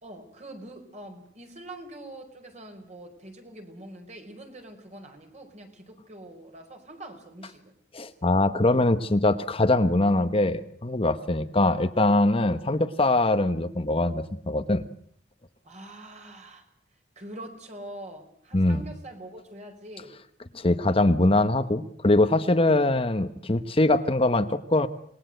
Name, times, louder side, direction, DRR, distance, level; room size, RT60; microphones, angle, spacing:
voice 1, 0.0-7.7 8.2-8.4 11.3-11.4 12.4-12.6 15.6-16.6 17.1-20.2, right 1 dB, 40° right, 5 dB, 5.0 m, -44 dB
voice 2, 7.9-14.8 18.5-18.8 20.5-24.9, left 2 dB, 35° left, 9 dB, 1.1 m, -22 dB
27.5 x 20.5 x 7.9 m, 0.63 s
head